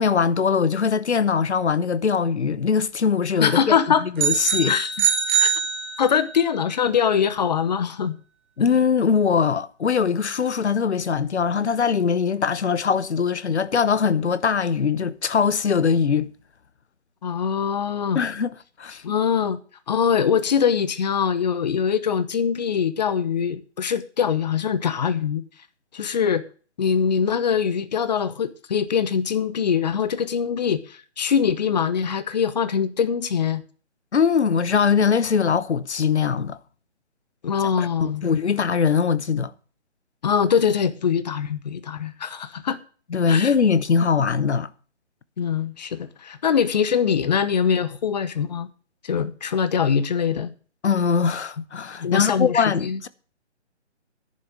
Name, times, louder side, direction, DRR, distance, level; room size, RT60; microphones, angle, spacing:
voice 1, 0.0-4.8 8.6-16.3 18.1-19.0 34.1-36.6 37.8-39.5 43.1-44.7 50.8-53.1, left 6 dB, 70° left, 1.0 m, -21 dB
voice 2, 3.4-4.0 4.6-4.9 5.4-5.5 6.0-8.2 17.2-18.2 19.0-19.6 19.9-25.4 25.9-26.4 26.8-33.6 37.4-38.2 40.2-42.8 43.3-43.5 45.4-48.7 49.0-50.5 52.0-53.0, left 7 dB, 40° left, 1.1 m, -23 dB
sound 1, 4.2-6.4, right 7 dB, 10° right, 0.7 m, -23 dB
11.0 x 6.6 x 7.5 m
figure-of-eight pair, 155°, 35 cm